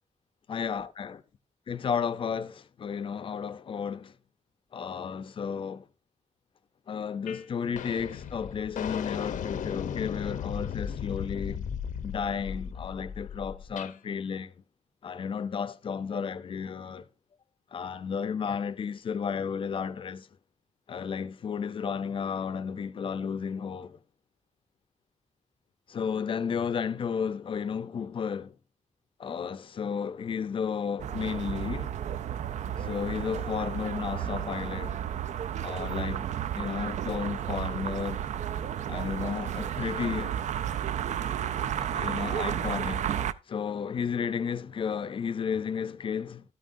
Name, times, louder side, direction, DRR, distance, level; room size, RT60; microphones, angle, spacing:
voice 1, 0.5-1.2 1.7-4.1 4.7-5.8 6.9-11.7 12.0-14.5 15.0-17.1 17.7-20.3 20.9-24.0 25.9-28.5 29.2-31.9 32.8-35.0 35.6-36.2 36.5-38.2 38.9-40.3 41.8-43.1 43.5-46.4, left 6 dB, 40° left, 0.5 m, -33 dB
sound 1, 7.3-7.5 7.8-14.0, left 8 dB, 80° left, 0.7 m, -36 dB
sound 2, 31.0-43.3, right 10 dB, 65° right, 0.4 m, -32 dB
13.0 x 9.1 x 2.5 m
wide cardioid pair, 180°, 13 cm